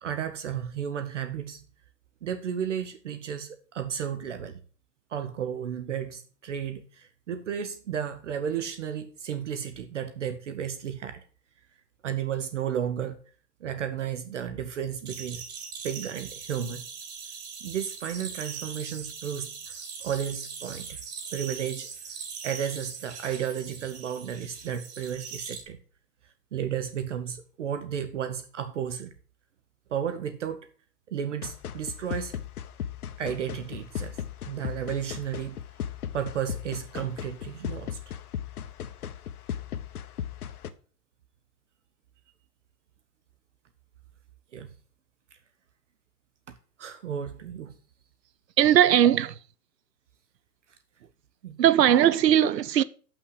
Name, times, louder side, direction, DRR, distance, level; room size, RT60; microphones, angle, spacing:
voice 1, 0.0-1.6 2.2-4.6 5.1-11.2 12.0-13.2 13.6-15.4 15.8-16.8 17.6-19.7 20.0-21.0 21.3-21.9 22.4-25.8 26.5-29.1 29.9-30.7 31.1-32.4 33.2-34.2 34.5-35.6 36.1-38.0 44.5-44.7 46.8-47.7 51.4-51.6, right 8 dB, 45° right, 0.9 m, -33 dB
sound 1, 15.1-25.6, right 6 dB, 25° right, 1.2 m, -41 dB
sound 2, 31.4-40.7, left 9 dB, 60° left, 1.0 m, -37 dB
voice 2, 48.6-49.3 51.6-52.8, right 10 dB, 80° right, 0.9 m, -19 dB
7.4 x 6.0 x 6.5 m
hypercardioid pair, 165°, 49 cm